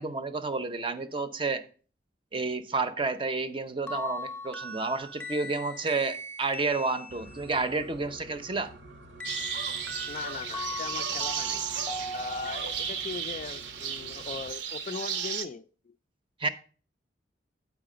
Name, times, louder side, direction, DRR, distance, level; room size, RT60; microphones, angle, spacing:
voice 1, 0.0-1.6 2.3-8.7 16.4-16.5, right 3 dB, 30° right, 0.6 m, -30 dB
sound 1, 3.9-7.6 9.2-13.0, left 1 dB, 5° left, 0.7 m, -39 dB
sound 2, 7.1-14.5, right 1 dB, 90° right, 1.1 m, -50 dB
sound 3, 9.2-15.5, right 7 dB, 70° right, 0.7 m, -34 dB
voice 2, 10.1-11.6 12.1-15.9, left 5 dB, 40° left, 0.3 m, -39 dB
8.3 x 4.8 x 4.9 m
head